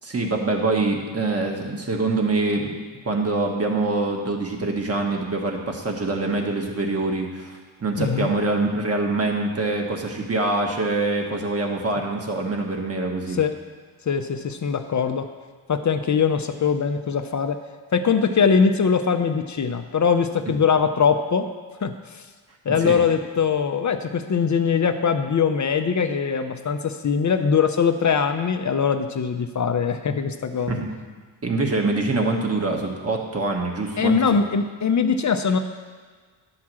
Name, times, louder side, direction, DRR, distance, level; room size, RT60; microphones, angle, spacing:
voice 1, 0.0-2.7 3.0-13.4 22.8-23.0 30.7-30.9 31.4-34.2, right 3 dB, 30° right, 2 dB, 1.4 m, -24 dB
voice 2, 8.0-8.3 13.3-13.5 14.1-15.3 15.7-17.6 17.9-21.5 21.8-22.2 22.7-30.8 34.0-35.6, left 6 dB, 35° left, 7 dB, 0.6 m, -22 dB
11.0 x 4.8 x 7.5 m, 1.5 s
cardioid pair, 95°, 50 cm